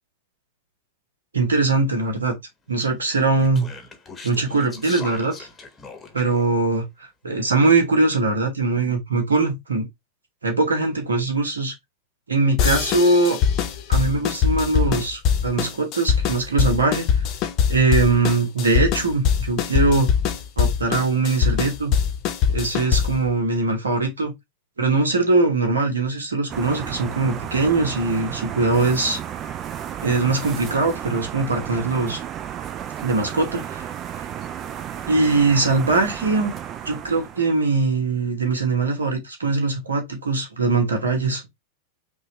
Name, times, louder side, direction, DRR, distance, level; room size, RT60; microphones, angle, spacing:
voice 1, 1.3-2.3 2.7-3.7 4.2-5.5 6.1-6.9 7.2-9.9 10.4-11.7 12.3-13.4 13.9-17.0 17.7-20.1 20.6-21.9 22.5-24.3 24.8-29.2 30.0-32.2 33.0-33.9 35.1-36.5 36.8-41.4, right 3 dB, 70° right, 1.2 m, -21 dB
Speech, 3.0-6.5, left 4 dB, 15° left, 1.0 m, -41 dB
sound 1, 12.6-23.3, left 7 dB, 40° left, 0.8 m, -22 dB
sound 2, 26.5-37.8, right 10 dB, 30° right, 0.4 m, -33 dB
5.3 x 2.4 x 3.0 m
figure-of-eight pair, 90°, 0 cm